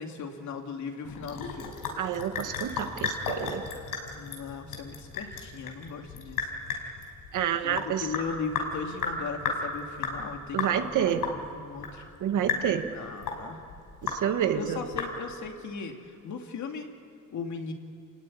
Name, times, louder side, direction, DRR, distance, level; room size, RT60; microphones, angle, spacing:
voice 1, 0.0-1.7 4.1-6.5 7.6-12.0 12.9-13.6 14.5-16.9 17.3-17.7, left 5 dB, 60° left, 4 dB, 2.7 m, -38 dB
Sink (filling or washing) / Drip, 1.0-15.5, left 5 dB, 80° left, 5.2 m, -35 dB
voice 2, 2.0-3.7 7.3-8.1 10.5-11.3 12.2-12.9 14.0-14.8, right 9 dB, 65° right, 8 dB, 1.8 m, -28 dB
28.5 x 16.0 x 9.9 m, 2.6 s
cardioid pair, 140°, 32 cm